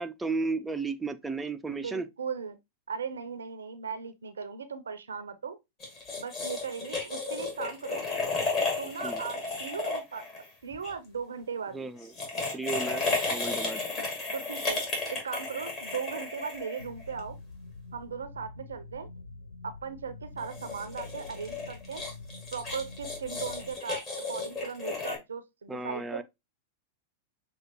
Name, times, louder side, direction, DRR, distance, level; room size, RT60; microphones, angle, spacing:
voice 1, 0.0-2.1 9.0-9.2 11.7-12.1 12.5-13.0 13.3-13.8 25.7-26.2, right 3 dB, 10° right, 0.4 m, -33 dB
voice 2, 1.8-2.6 2.9-5.6 6.2-8.0 8.8-10.2 10.6-11.8 14.3-14.8 15.1-17.4 17.9-19.1 19.6-22.0 22.5-26.2, right 6 dB, 80° right, 0.5 m, -38 dB
sound 1, 5.8-10.9 12.0-17.2 20.4-25.2, left 3 dB, 35° left, 2.0 m, -33 dB
sound 2, 16.8-23.8, left 3 dB, 80° left, 0.6 m, -46 dB
6.2 x 2.3 x 2.9 m
figure-of-eight pair, 100°, 0 cm